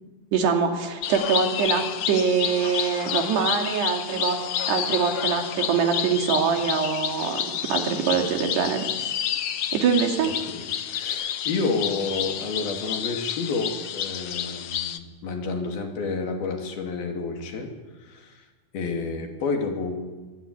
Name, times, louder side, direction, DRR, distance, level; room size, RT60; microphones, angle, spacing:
voice 1, 0.3-4.4 4.7-9.1 9.7-10.3, right 6 dB, 85° right, 4 dB, 4.7 m, -24 dB
sound 1, 1.0-15.0, left 9 dB, 80° left, 1.4 m, -30 dB
voice 2, 10.2-17.7 18.0-18.4 18.7-20.0, left 4 dB, 65° left, 3 dB, 4.6 m, -30 dB
24.0 x 21.5 x 10.0 m, 1.3 s
omnidirectional pair, 4.7 m